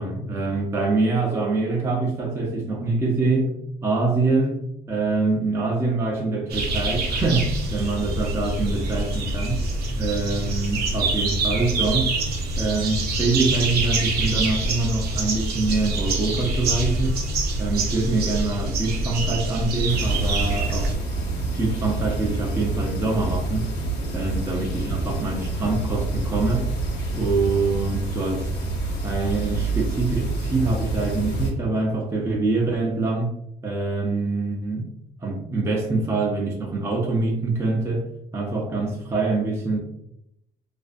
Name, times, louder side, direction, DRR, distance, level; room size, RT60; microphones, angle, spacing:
voice 1, 0.0-3.5 3.8-9.6 10.0-12.1 12.6-17.3 17.6-20.9 21.2-23.7 24.1-26.7 27.1-28.5 29.0-33.3 33.6-34.9 35.2-38.1 38.3-39.8, right 3 dB, 15° right, 0 dB, 0.4 m, -25 dB
sound 1, 6.5-20.9, right 2 dB, 65° right, 0.6 m, -25 dB
sound 2, 19.9-31.5, right 2 dB, 85° left, 0.9 m, -27 dB
2.4 x 2.1 x 2.4 m, 0.77 s
cardioid pair, 110°, 17 cm